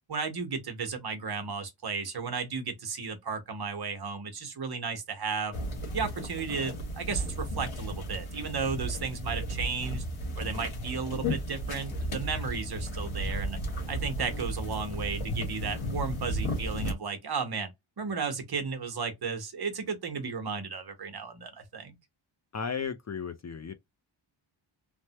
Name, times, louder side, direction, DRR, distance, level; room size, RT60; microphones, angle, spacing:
voice 1, 0.1-5.6 5.9-10.0 10.4-13.6 13.9-17.7 18.0-21.9, right 5 dB, 50° right, 1.0 m, -34 dB
sound 1, 5.5-16.9, equal, 90° left, 1.6 m, -34 dB
voice 2, 22.5-23.7, left 6 dB, 35° left, 0.4 m, -34 dB
3.3 x 2.1 x 2.8 m
wide cardioid pair, 100°, 48 cm